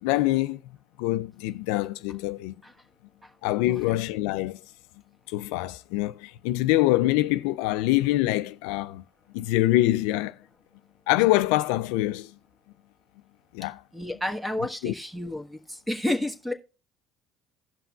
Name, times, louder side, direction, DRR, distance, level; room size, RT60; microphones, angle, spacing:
voice 1, 0.0-0.6 1.0-2.5 3.4-4.6 5.3-9.0 9.3-10.4 11.1-12.3 13.5-13.8 14.8-14.9, left 16 dB, 75° left, 0.3 m, -25 dB
voice 2, 3.7-4.0 13.9-16.5, left 1 dB, 5° right, 1.3 m, -31 dB
16.5 x 5.7 x 2.4 m
hypercardioid pair, 65°, 0 cm